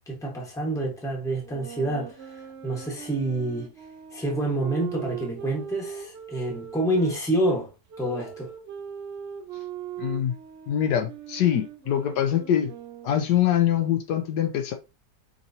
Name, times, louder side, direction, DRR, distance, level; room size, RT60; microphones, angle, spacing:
voice 1, 0.1-3.7 4.1-7.7 8.0-8.5, right 1 dB, ahead, 1.0 m, -28 dB
sound 1, 1.4-7.2 7.9-13.4, right 9 dB, 60° right, 0.7 m, -40 dB
voice 2, 10.0-10.3 10.7-12.7 13.0-14.7, left 10 dB, 75° left, 1.1 m, -24 dB
5.3 x 3.0 x 2.7 m
omnidirectional pair, 1.9 m